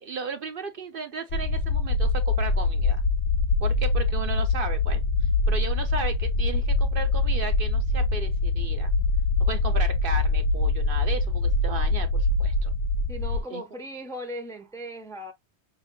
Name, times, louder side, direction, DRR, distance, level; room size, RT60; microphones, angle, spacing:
voice 1, 0.0-3.0 3.6-5.0 5.5-8.9 9.4-12.7 13.5-13.6, right 4 dB, 55° right, 0.8 m, -35 dB
sound 1, 1.3-13.4, left 3 dB, 65° left, 0.8 m, -24 dB
voice 2, 13.1-15.3, equal, 5° left, 0.6 m, -37 dB
5.6 x 2.3 x 2.6 m
omnidirectional pair, 1.2 m